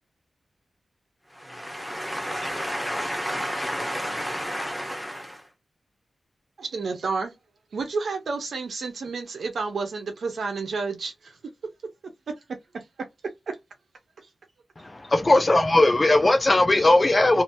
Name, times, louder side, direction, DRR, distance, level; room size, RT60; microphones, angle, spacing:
voice 1, 1.3-5.4, equal, ahead, 1.0 m, -31 dB
voice 2, 6.6-7.3 7.7-11.4 12.3-12.4 12.7-12.8 13.5-13.6, right 4 dB, 75° right, 0.9 m, -30 dB
voice 3, 14.8-17.4, left 2 dB, 25° left, 0.4 m, -19 dB
2.8 x 2.8 x 2.7 m
wide cardioid pair, 160°, 0 cm